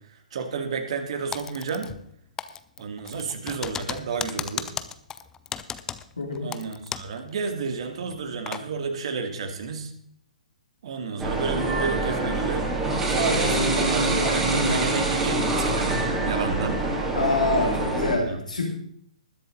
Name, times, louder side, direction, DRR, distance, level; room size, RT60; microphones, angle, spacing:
voice 1, 0.1-1.9 2.8-4.7 6.4-9.9 10.8-12.7 13.1-16.8 18.1-18.4, right 5 dB, 50° right, 6 dB, 2.3 m, -30 dB
Typing, 1.3-2.1 2.4-7.2 7.5-7.6 8.1-8.6, left 8 dB, 15° left, 0.6 m, -35 dB
voice 2, 6.2-6.5 17.1-18.7, left 2 dB, 75° left, 0 dB, 2.9 m, -25 dB
sound 1, 11.2-18.2, right 2 dB, 10° right, 2.9 m, -25 dB
20.0 x 7.6 x 4.1 m, 0.66 s
figure-of-eight pair, 125°, 4 cm